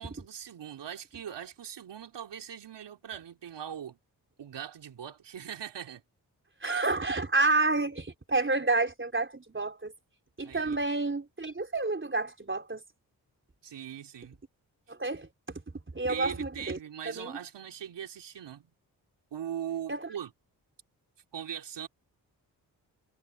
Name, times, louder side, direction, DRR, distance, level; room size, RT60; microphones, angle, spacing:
voice 1, 0.0-4.0 4.4-6.0 10.4-10.8 13.6-14.4 16.1-18.7 19.3-20.3 21.3-21.9, right 9 dB, 80° right, 3.3 m, -40 dB
voice 2, 6.6-9.9 10.4-12.8 14.9-15.6 15.9-16.8 17.1-17.4 19.9-20.1, right 3 dB, 30° right, 3.7 m, -29 dB
supercardioid pair, 40°, 42 cm